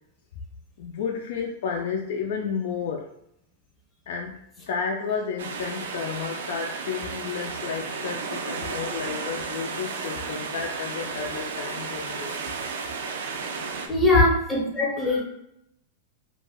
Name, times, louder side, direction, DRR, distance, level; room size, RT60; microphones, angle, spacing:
voice 1, 0.8-3.1 4.1-4.4 4.7-12.8, left 6 dB, 70° left, 1 dB, 0.4 m, -32 dB
sound 1, 5.4-13.9, right 4 dB, 85° right, 0.4 m, -33 dB
voice 2, 13.9-15.2, left 1 dB, 15° left, -4 dB, 0.7 m, -22 dB
2.4 x 2.1 x 3.3 m, 0.76 s
supercardioid pair, 140°, 0 cm